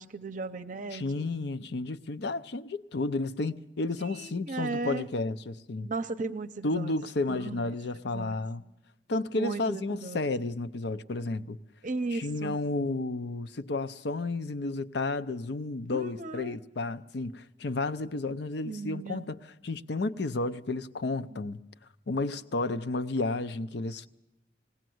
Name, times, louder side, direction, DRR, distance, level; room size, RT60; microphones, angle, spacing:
voice 1, 0.0-1.3 4.0-5.1 5.8-6.9 7.3-7.7 8.1-8.4 9.3-10.3 11.8-12.6 15.9-16.6 18.6-19.3 21.3-21.4, right 3 dB, 45° right, 0.7 m, -36 dB
voice 2, 0.9-5.9 6.6-8.6 9.1-11.6 12.1-19.4 19.6-21.6 22.1-24.1, left 2 dB, 65° left, 0.6 m, -32 dB
20.5 x 16.5 x 7.8 m
head